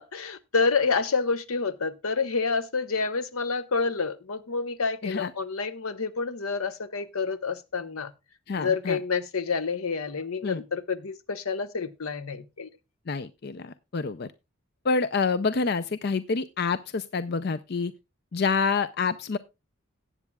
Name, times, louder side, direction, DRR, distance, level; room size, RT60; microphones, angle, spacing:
voice 1, 0.0-8.1 8.6-12.7, left 4 dB, 80° left, 14 dB, 0.9 m, -28 dB
voice 2, 8.5-9.0 10.4-10.6 13.1-14.3 14.8-17.9 18.3-19.4, left 4 dB, 45° left, 14 dB, 0.4 m, -27 dB
18.0 x 8.2 x 2.3 m, 0.25 s
head